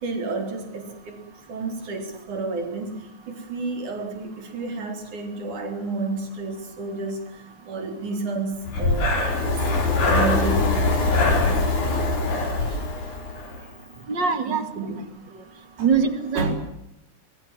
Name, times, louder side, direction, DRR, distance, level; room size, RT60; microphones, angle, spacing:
voice 1, 0.0-10.8 11.0-12.0 12.6-13.1 13.6-14.1 14.5-15.3 15.8-15.9 16.3-16.6, right 3 dB, 80° right, 5 dB, 5.7 m, -32 dB
Breathing, 8.6-13.6, left 2 dB, 85° left, 5.9 m, -22 dB
voice 2, 14.1-14.7 15.8-16.5, right 5 dB, 40° right, 9 dB, 2.8 m, -22 dB
24.0 x 23.0 x 7.7 m, 0.82 s
omnidirectional pair, 3.4 m